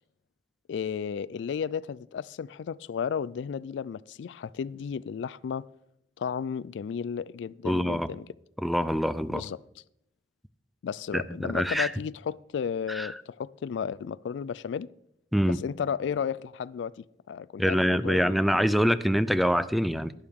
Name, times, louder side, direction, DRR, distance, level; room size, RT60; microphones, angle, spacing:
voice 1, 0.7-5.7 6.2-8.3 9.3-9.6 10.8-14.9 15.5-18.6, left 7 dB, 85° left, 0.3 m, -33 dB
voice 2, 7.6-8.1 8.6-9.4 11.1-11.9 12.9-13.1 15.3-15.6 17.6-20.1, equal, ahead, 0.4 m, -25 dB
11.5 x 11.5 x 3.6 m
head